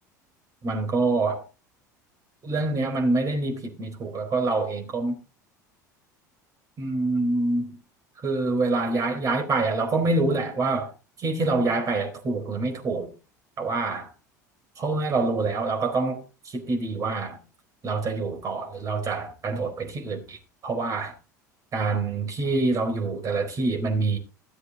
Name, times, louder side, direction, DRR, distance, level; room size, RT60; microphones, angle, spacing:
voice 1, 0.6-1.4 2.4-5.2 6.8-7.7 8.2-10.9 11.2-13.1 13.6-14.1 14.8-17.4 17.8-20.4 20.6-21.1 21.7-24.2, right 3 dB, 35° right, 4.4 m, -26 dB
14.5 x 7.5 x 4.0 m
figure-of-eight pair, 70°, 10 cm